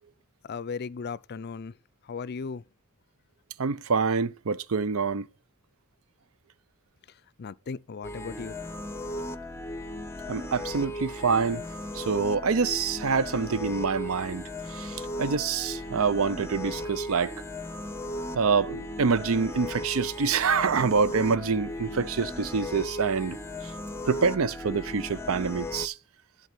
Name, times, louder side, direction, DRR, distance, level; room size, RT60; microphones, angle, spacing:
voice 1, 0.4-1.7 2.1-2.6 7.4-8.6, left 5 dB, 50° left, 0.4 m, -36 dB
voice 2, 3.6-5.3 10.3-11.6 11.9-14.4 14.7-17.3 18.3-23.4 24.0-25.9, right 5 dB, 80° right, 0.6 m, -26 dB
sound 1, 8.0-25.9, left 1 dB, 10° left, 0.7 m, -36 dB
11.0 x 4.0 x 7.4 m
head